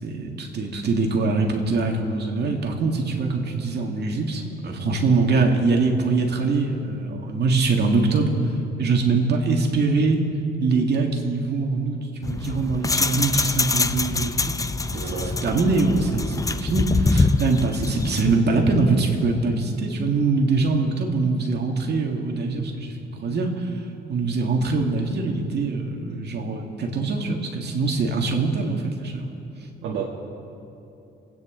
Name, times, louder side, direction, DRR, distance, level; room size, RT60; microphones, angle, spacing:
voice 1, 0.0-8.4 8.8-10.2 10.6-14.6 14.9-23.7 24.1-29.3, right 3 dB, 55° right, 2 dB, 2.0 m, -23 dB
sound 1, 12.2-18.4, left 3 dB, 15° left, 0.5 m, -24 dB
voice 2, 14.9-15.4 29.8-30.0, right 7 dB, 85° right, -3 dB, 1.5 m, -30 dB
27.0 x 9.5 x 3.9 m, 2.9 s
cardioid pair, 90°, 20 cm